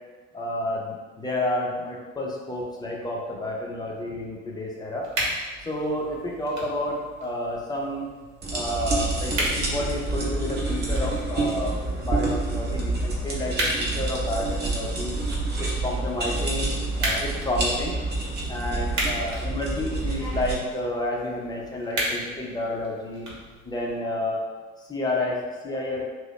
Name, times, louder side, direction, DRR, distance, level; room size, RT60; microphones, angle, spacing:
voice 1, 0.3-5.1 5.6-8.1 8.5-15.2 15.6-16.7 17.0-17.9 18.5-23.3 23.6-24.4 24.8-26.1, left 1 dB, 10° left, -2 dB, 0.5 m, -30 dB
sound 1, 5.0-24.0, right 1 dB, 45° right, 1.1 m, -36 dB
sound 2, 8.4-20.6, right 2 dB, 25° right, 0.8 m, -28 dB
2.8 x 2.0 x 4.0 m, 1.3 s
figure-of-eight pair, 70°, 39 cm